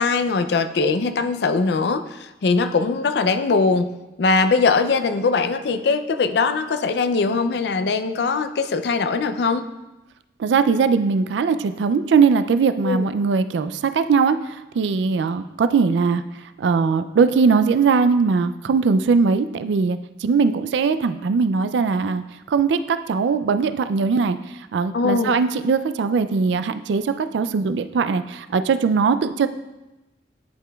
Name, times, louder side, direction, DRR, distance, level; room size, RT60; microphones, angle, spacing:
voice 1, 0.0-9.7 12.8-13.1 24.9-25.4, left 4 dB, 65° left, 10 dB, 0.4 m, -21 dB
voice 2, 10.4-16.2 16.6-24.4 24.7-29.5, right 5 dB, 75° right, 11 dB, 0.3 m, -20 dB
11.0 x 4.9 x 2.3 m, 1.0 s
head